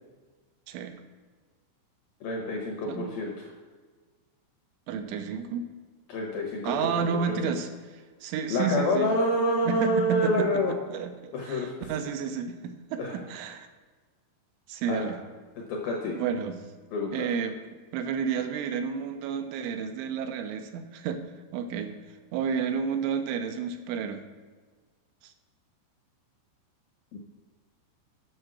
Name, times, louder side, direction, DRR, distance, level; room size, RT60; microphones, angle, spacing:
voice 1, 0.7-1.0 2.9-3.1 4.9-5.7 6.7-7.7 8.2-9.1 9.6-13.7 14.7-15.2 16.1-16.6 17.1-21.2 21.5-21.9 22.3-24.2 25.2-25.3, right 7 dB, 80° right, 7 dB, 2.9 m, -31 dB
voice 2, 2.2-3.5 6.1-7.5 8.5-10.7 11.3-11.7 13.0-13.2 14.9-15.1 15.7-16.2 16.9-17.3 27.1-27.2, left 1 dB, 75° left, 0 dB, 2.1 m, -28 dB
8.8 x 6.4 x 6.1 m, 1.4 s
omnidirectional pair, 5.6 m